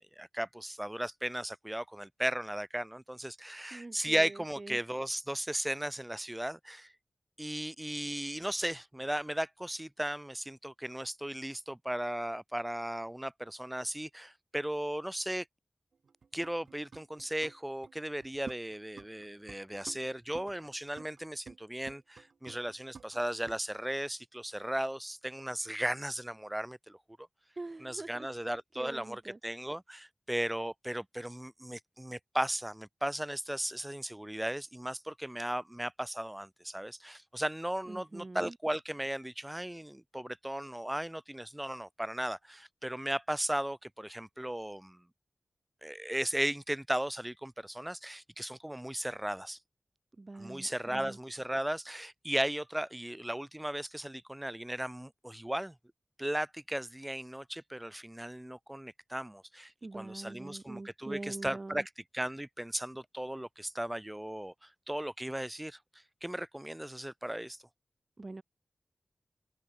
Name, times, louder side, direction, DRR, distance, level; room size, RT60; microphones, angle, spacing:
voice 1, 0.1-6.9 7.4-15.4 16.3-27.0 27.8-45.0 45.8-49.6 50.3-55.7 56.2-65.8 66.2-67.6, right 1 dB, 10° right, 1.6 m, -36 dB
voice 2, 3.7-4.8 27.6-28.3 28.8-29.4 37.9-38.5 50.2-51.2 59.8-61.8 68.2-68.4, right 2 dB, 35° right, 0.6 m, -44 dB
sound 1, 15.9-17.6 17.8-19.6 19.9-21.6 21.9-23.6, right 5 dB, 85° right, 0.9 m, -51 dB
wide cardioid pair, 100°, 0 cm